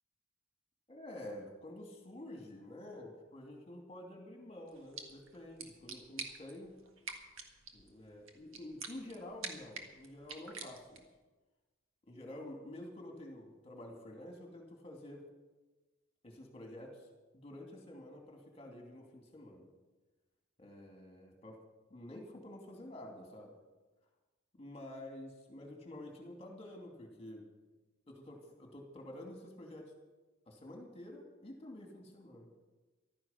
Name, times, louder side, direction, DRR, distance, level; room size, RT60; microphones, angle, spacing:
voice 1, 0.9-6.8 7.7-11.0 12.1-15.2 16.2-17.1 17.3-19.7 20.6-21.6 21.9-23.6 24.6-27.5 28.1-29.9 30.5-32.5, left 1 dB, 30° left, 2 dB, 2.6 m, -49 dB
sound 1, 4.7-11.2, right 5 dB, 75° right, 1.7 m, -48 dB
14.5 x 12.5 x 5.8 m, 1.2 s
head